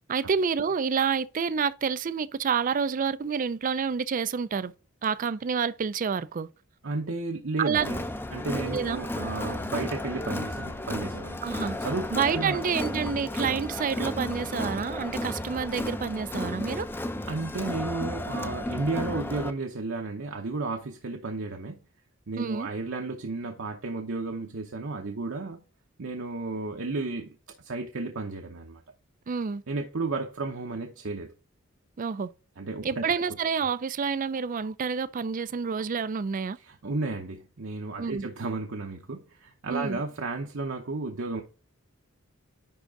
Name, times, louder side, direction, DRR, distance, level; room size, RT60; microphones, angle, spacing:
voice 1, 0.1-4.7 5.0-6.5 7.6-7.9 8.7-9.0 11.4-11.8 12.1-16.9 22.4-22.7 29.3-29.6 32.0-32.3 32.8-36.6 38.0-38.3 39.7-40.0, right 6 dB, 40° right, 0.4 m, -28 dB
voice 2, 6.8-8.0 8.3-11.4 11.8-12.6 17.3-21.8 22.3-25.6 26.0-28.8 29.7-31.3 32.6-33.0 36.6-41.4, right 3 dB, 65° right, 0.8 m, -33 dB
Crowd, 7.7-19.5, left 1 dB, 10° left, 0.5 m, -33 dB
10.5 x 3.7 x 3.6 m
head